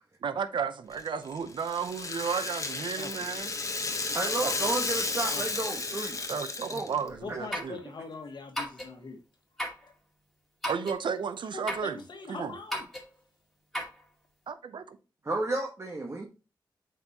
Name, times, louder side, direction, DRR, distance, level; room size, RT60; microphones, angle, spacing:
voice 1, 0.2-3.8 4.4-4.5 6.3-7.8 10.7-12.0 12.3-12.5 14.5-15.0, right 6 dB, 75° right, 0.7 m, -33 dB
Rattle (instrument), 0.9-7.1, left 3 dB, 40° left, 1.1 m, -33 dB
voice 2, 3.0-3.3 5.3-5.4 7.2-9.2 9.8-9.9 11.8-12.8, left 4 dB, 65° left, 1.6 m, -42 dB
voice 3, 4.1-6.2 6.7-7.2 15.2-16.3, right 2 dB, 35° right, 1.4 m, -32 dB
sound 1, 7.5-7.8 8.6-8.9 9.6-9.8 10.6-11.0 11.7-11.9 12.7-13.1 13.7-14.0, equal, ahead, 2.2 m, -34 dB
7.9 x 4.6 x 2.9 m
cardioid pair, 65°, 8 cm